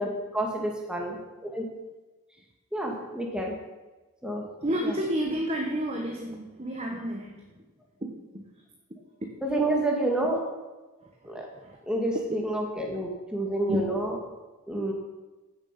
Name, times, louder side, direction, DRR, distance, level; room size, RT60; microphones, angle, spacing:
voice 1, 0.0-1.6 2.7-3.6 4.2-4.4 4.8-5.0 9.4-10.4 11.3-11.5 11.8-14.2 14.7-14.9, right 1 dB, 5° right, 0 dB, 1.9 m, -29 dB
voice 2, 4.6-7.5 8.0-8.2 11.0-11.8 13.7-13.8, equal, 30° right, 1 dB, 1.1 m, -31 dB
15.0 x 7.2 x 5.8 m, 1.2 s
head